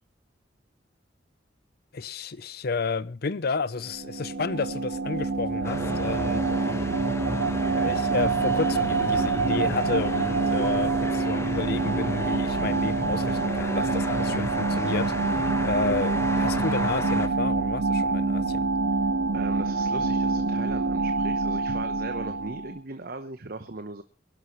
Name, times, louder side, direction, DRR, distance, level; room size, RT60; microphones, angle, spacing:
voice 1, 1.9-6.4 7.8-18.7, left 4 dB, 60° left, 0.6 m, -31 dB
sound 1, 3.8-22.8, right 4 dB, 80° right, 0.8 m, -26 dB
sound 2, 5.6-17.3, left 1 dB, 15° left, 1.0 m, -34 dB
voice 2, 19.3-24.0, right 3 dB, 55° right, 0.9 m, -38 dB
23.0 x 11.5 x 3.1 m
head